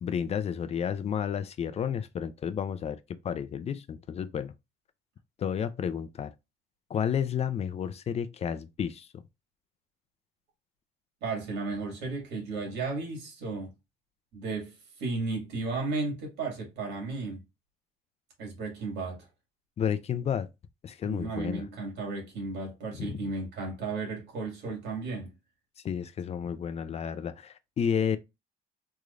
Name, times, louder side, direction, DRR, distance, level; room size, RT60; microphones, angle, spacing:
voice 1, 0.0-4.5 5.4-6.3 6.9-9.2 19.8-20.5 20.8-21.6 23.0-23.3 25.8-28.2, left 8 dB, 40° left, 0.4 m, -31 dB
voice 2, 11.2-13.7 14.3-17.4 18.4-19.3 21.0-25.3, right 3 dB, 80° right, 2.0 m, -34 dB
3.6 x 3.2 x 2.4 m
cardioid pair, 110°, 17 cm